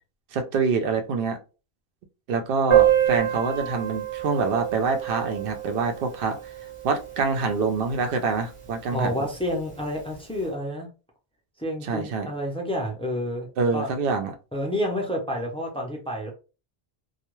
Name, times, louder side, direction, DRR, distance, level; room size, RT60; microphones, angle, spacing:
voice 1, 0.3-1.4 2.3-6.4 6.8-9.1 11.8-12.3 13.6-14.3, right 4 dB, 65° right, 0.8 m, -25 dB
Piano, 2.7-8.1 8.3-8.4 8.6-8.8 9.1-9.2 10.0-10.1, right 12 dB, 35° right, 0.8 m, -26 dB
voice 2, 8.9-10.9 11.6-13.5 13.7-13.9 14.5-16.3, equal, 5° left, 0.5 m, -29 dB
2.3 x 2.2 x 3.0 m
omnidirectional pair, 1.1 m